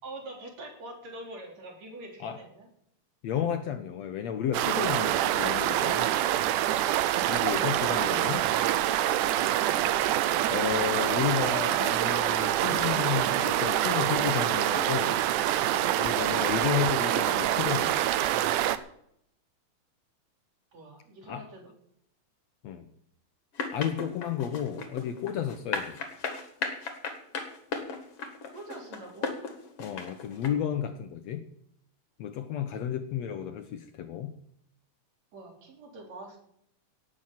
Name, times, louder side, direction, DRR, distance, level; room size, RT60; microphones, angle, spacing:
voice 1, 0.0-2.7 20.7-21.7 28.5-29.4 35.3-36.4, right 1 dB, 55° right, 0 dB, 4.7 m, -44 dB
voice 2, 3.2-6.1 7.3-8.4 10.5-15.2 16.0-18.0 21.3-21.5 22.6-22.9 23.7-26.0 29.8-31.4 32.2-34.3, left 9 dB, 70° left, 9 dB, 1.9 m, -32 dB
sound 1, 4.5-18.8, right 12 dB, 80° right, 2.2 m, -26 dB
sound 2, 23.6-30.5, left 4 dB, 50° left, 2.7 m, -35 dB
18.0 x 7.8 x 7.3 m, 0.71 s
omnidirectional pair, 3.6 m